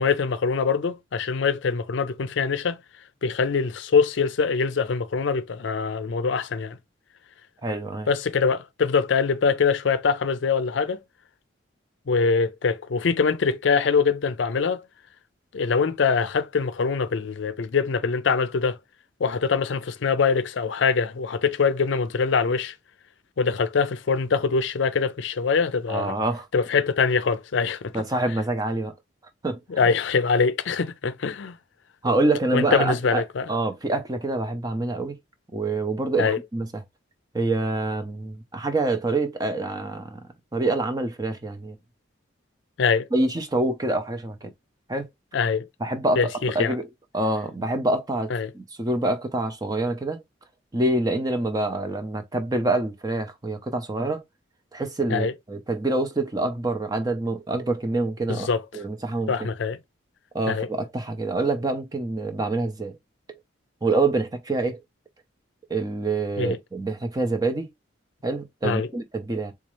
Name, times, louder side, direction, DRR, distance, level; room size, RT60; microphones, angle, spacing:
voice 1, 0.0-2.8 3.2-6.8 8.1-11.0 12.1-14.8 15.5-18.8 19.2-22.7 23.4-26.1 26.5-27.9 29.7-31.5 32.5-33.5 36.2-36.4 42.8-43.1 45.3-45.7 46.2-46.7 48.3-48.5 55.1-55.3 58.3-58.6 59.3-59.8 60.5-60.7 66.4-66.6 68.6-68.9, left 5 dB, 70° left, 0.5 m, -23 dB
voice 2, 7.6-8.1 25.9-26.5 27.9-28.9 29.4-29.6 32.0-35.1 35.5-36.8 37.3-40.2 40.5-41.8 43.1-44.5 44.9-45.1 45.8-46.3 46.5-46.9 47.1-50.2 50.7-54.2 54.7-59.5 60.3-63.0 63.3-63.4 63.8-64.8 65.7-67.7 68.2-69.5, right 2 dB, 20° right, 0.5 m, -26 dB
4.1 x 2.4 x 3.0 m
head